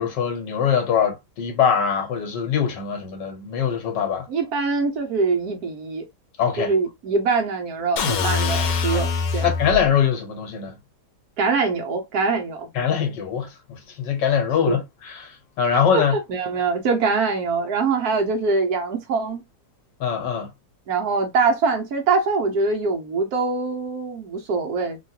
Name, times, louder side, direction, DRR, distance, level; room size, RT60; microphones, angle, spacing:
voice 1, 0.0-4.3 6.4-6.7 9.4-10.8 12.7-16.1 20.0-20.5, left 7 dB, 90° left, 1.8 m, -23 dB
voice 2, 4.3-6.0 6.6-9.5 11.4-12.7 14.7-14.8 15.9-19.4 20.9-25.0, right 4 dB, 65° right, 1.2 m, -23 dB
sound 1, 8.0-9.9, left 5 dB, 65° left, 1.1 m, -23 dB
3.6 x 2.3 x 2.7 m
omnidirectional pair, 1.9 m